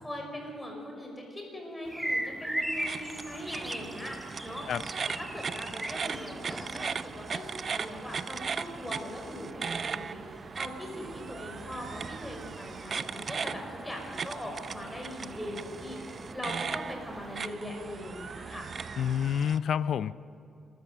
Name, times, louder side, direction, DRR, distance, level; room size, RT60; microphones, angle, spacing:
voice 1, 0.0-4.7 5.0-18.7, equal, 10° left, 1 dB, 5.6 m, -41 dB
sound 1, 1.8-17.5, right 1 dB, 5° right, 1.6 m, -41 dB
sound 2, 2.7-19.6, right 5 dB, 50° right, 0.6 m, -38 dB
voice 2, 19.0-20.2, left 8 dB, 70° left, 17 dB, 0.5 m, -28 dB
27.0 x 13.5 x 8.0 m, 2.6 s
cardioid pair, 80°, 0 cm